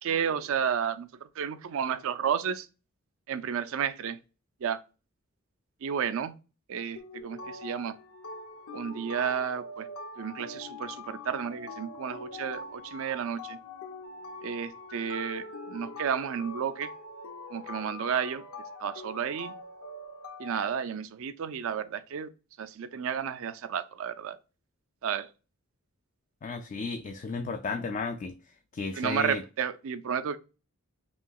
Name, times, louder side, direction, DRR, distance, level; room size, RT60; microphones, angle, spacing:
voice 1, 0.0-2.7 3.3-4.2 4.6-4.8 5.8-6.3 6.7-8.0 8.7-9.9 10.2-13.6 14.4-16.9 17.5-18.4 18.8-19.5 20.4-22.3 22.6-24.4 25.0-25.3 28.9-30.4, right 7 dB, 65° right, 0.4 m, -32 dB
sound 1, 7.0-20.7, left 2 dB, 80° left, 0.6 m, -43 dB
voice 2, 26.4-28.4 28.7-29.4, left 4 dB, 35° left, 0.3 m, -33 dB
5.4 x 2.8 x 2.3 m
head